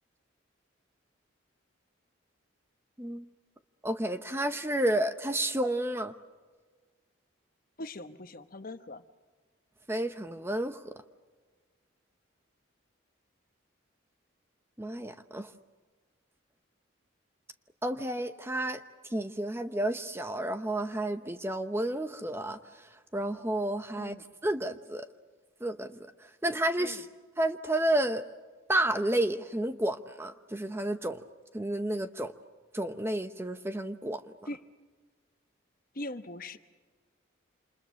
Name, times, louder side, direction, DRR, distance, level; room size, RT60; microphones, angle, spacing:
voice 1, 3.0-3.3 3.8-6.1 9.9-10.9 14.8-15.5 17.8-18.8 19.1-24.2 24.4-25.1 25.6-27.1 27.4-28.2 28.7-31.2 31.5-32.3 32.7-34.2, right 1 dB, 10° right, 9 dB, 0.8 m, -31 dB
voice 2, 7.8-9.0 24.0-24.2 26.8-27.0 34.5-34.6 35.9-36.6, left 1 dB, 45° left, 9 dB, 1.0 m, -41 dB
28.0 x 27.5 x 6.4 m, 1.4 s
head